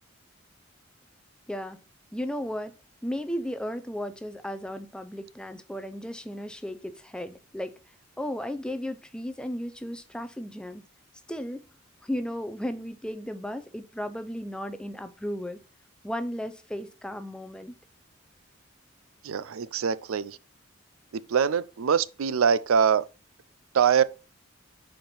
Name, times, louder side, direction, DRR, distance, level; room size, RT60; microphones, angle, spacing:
voice 1, 1.5-1.8 2.1-2.7 3.0-7.7 8.2-10.8 11.3-11.7 12.0-15.6 16.0-17.7, equal, 5° left, 0.5 m, -35 dB
voice 2, 19.2-20.4 21.1-23.1 23.7-24.0, right 7 dB, 90° right, 0.4 m, -23 dB
5.1 x 4.3 x 5.8 m
head